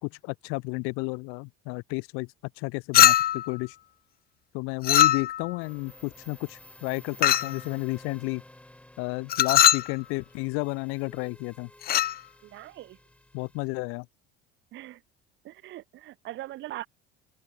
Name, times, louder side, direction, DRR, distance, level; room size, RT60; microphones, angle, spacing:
voice 1, 0.0-2.3 2.6-3.7 4.5-8.4 9.0-11.7 13.3-14.1, left 30 dB, 80° left, 3.4 m, -32 dB
Chink clink, 2.9-3.5 4.8-5.5 7.2-7.6 9.3-9.9 11.8-12.2, left 13 dB, 45° left, 0.7 m, -20 dB
sound 1, 5.6-13.7, left 1 dB, 5° left, 6.2 m, -52 dB
voice 2, 12.4-13.0 14.7-15.0 15.4-16.9, right 15 dB, 60° right, 6.2 m, -41 dB
open air
supercardioid pair, 105°, 21 cm